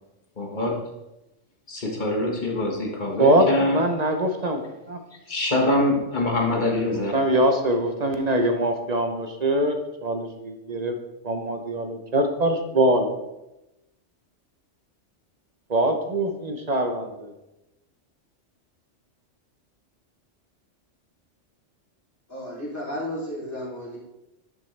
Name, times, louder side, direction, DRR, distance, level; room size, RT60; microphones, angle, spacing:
voice 1, 0.4-0.7 1.7-3.8 5.3-7.1, left 1 dB, 40° left, -1 dB, 1.7 m, -24 dB
voice 2, 3.2-5.0 7.1-11.0 11.2-13.1 15.7-17.3, right 1 dB, 40° right, 6 dB, 0.8 m, -23 dB
voice 3, 22.3-24.0, equal, 15° left, -8 dB, 3.2 m, -33 dB
11.0 x 6.2 x 3.3 m, 0.95 s
omnidirectional pair, 1.3 m